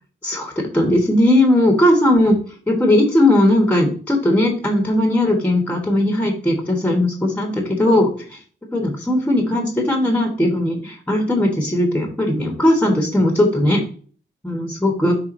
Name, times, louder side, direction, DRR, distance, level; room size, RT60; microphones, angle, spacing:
voice 1, 0.2-2.4 2.7-8.4 8.7-13.8 14.4-15.1, left 1 dB, 5° left, 3 dB, 1.2 m, -18 dB
5.7 x 3.7 x 5.1 m, 0.41 s
wide cardioid pair, 170°, 20 cm